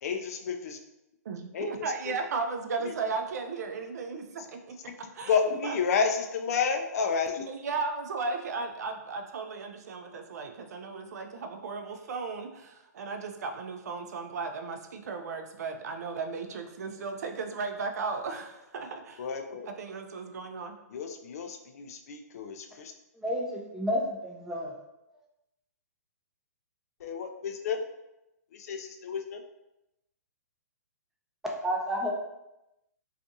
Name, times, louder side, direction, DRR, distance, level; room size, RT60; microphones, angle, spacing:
voice 1, 0.0-0.8 1.5-2.2 2.8-2.9 4.9-5.0 5.3-7.5 19.2-19.7 20.9-22.9 27.0-27.8 28.5-29.4, left 6 dB, 60° left, 6 dB, 0.4 m, -31 dB
voice 2, 1.2-4.6 5.2-5.7 7.5-19.3 19.7-20.8, right 4 dB, 65° right, 5 dB, 0.4 m, -35 dB
voice 3, 23.2-24.7 31.6-32.1, equal, 5° right, -2 dB, 0.4 m, -30 dB
2.5 x 2.4 x 2.6 m, 0.92 s
hypercardioid pair, 130°, 9 cm